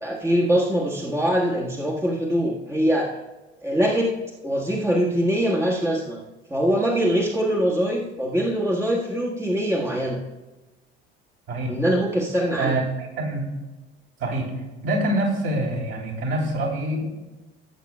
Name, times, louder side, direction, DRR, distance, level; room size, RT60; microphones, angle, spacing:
voice 1, 0.0-3.1 3.6-4.1 4.4-6.2 6.5-10.2 11.7-12.8, equal, 10° right, -2 dB, 1.6 m, -23 dB
voice 2, 11.5-11.8 12.6-13.5 14.2-14.5 14.8-17.1, right 1 dB, 50° right, -3 dB, 3.2 m, -25 dB
17.0 x 8.1 x 2.3 m, 1.1 s
figure-of-eight pair, 65°, 33 cm